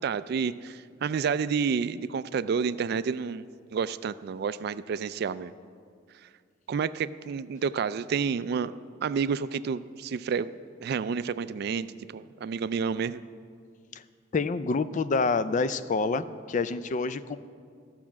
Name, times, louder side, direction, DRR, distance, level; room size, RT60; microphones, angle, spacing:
voice 1, 0.0-5.5 6.7-8.7 9.0-10.5 10.8-11.9 12.1-13.2, right 6 dB, 55° right, 15 dB, 0.3 m, -29 dB
voice 2, 14.3-17.4, left 4 dB, 40° left, 14 dB, 0.4 m, -27 dB
14.5 x 5.8 x 7.3 m, 2.1 s
head